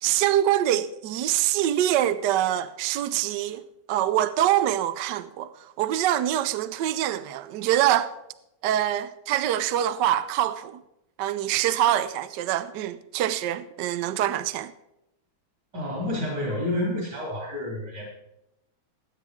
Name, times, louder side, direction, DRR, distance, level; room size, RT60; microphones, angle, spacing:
voice 1, 0.0-3.6 3.9-8.1 8.6-10.8 11.2-14.7, right 12 dB, 70° right, 1.1 m, -25 dB
voice 2, 15.7-18.1, left 1 dB, 50° right, 3.9 m, -29 dB
20.0 x 9.3 x 3.6 m
omnidirectional pair, 2.2 m